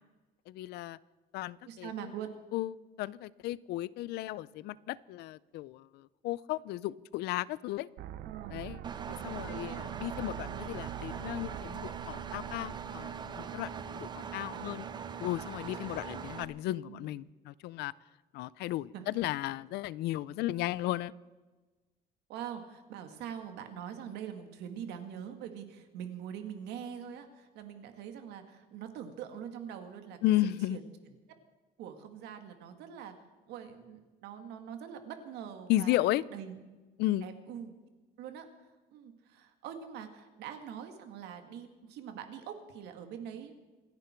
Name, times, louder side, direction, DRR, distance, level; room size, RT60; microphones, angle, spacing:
voice 1, 0.5-1.0 1.3-2.1 2.5-7.9 8.5-8.8 9.2-14.9 15.2-17.9 18.3-21.1 30.2-30.8 35.7-36.2 37.0-37.3, left 15 dB, 80° left, 21 dB, 0.5 m, -34 dB
voice 2, 1.6-2.3 8.2-8.6 9.4-9.9 14.5-14.8 16.9-17.1 18.9-19.1 22.3-30.8 31.8-33.1 33.5-36.0 36.3-36.6 37.2-37.7 38.2-38.5 38.9-43.5, right 8 dB, 85° right, 7 dB, 2.1 m, -43 dB
sound 1, 8.0-13.9, right 12 dB, 70° right, 0.5 m, -45 dB
Engine, 8.8-16.4, right 7 dB, 25° right, 0.7 m, -41 dB
27.0 x 10.5 x 4.5 m, 1.2 s
cardioid pair, 170°, 17 cm